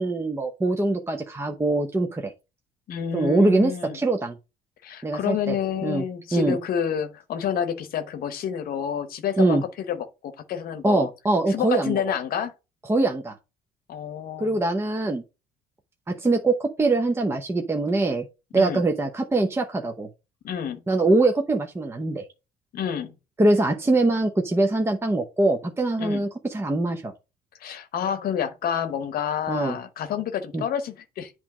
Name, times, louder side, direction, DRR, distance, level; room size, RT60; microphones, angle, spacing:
voice 1, 0.0-2.3 3.1-4.4 5.0-5.6 5.8-6.0 6.3-6.6 9.4-9.6 10.8-12.0 12.9-13.3 14.4-15.2 16.1-18.3 18.5-20.1 20.9-22.2 23.4-27.1 29.5-29.8 30.5-30.6, right 2 dB, 15° right, 0.8 m, -23 dB
voice 2, 2.9-4.0 4.8-11.1 11.5-12.5 13.9-14.6 18.5-18.8 20.4-20.8 22.7-23.1 26.0-26.2 27.6-31.3, left 8 dB, 60° left, 0.9 m, -29 dB
8.2 x 3.0 x 6.0 m
cardioid pair, 110°, 17 cm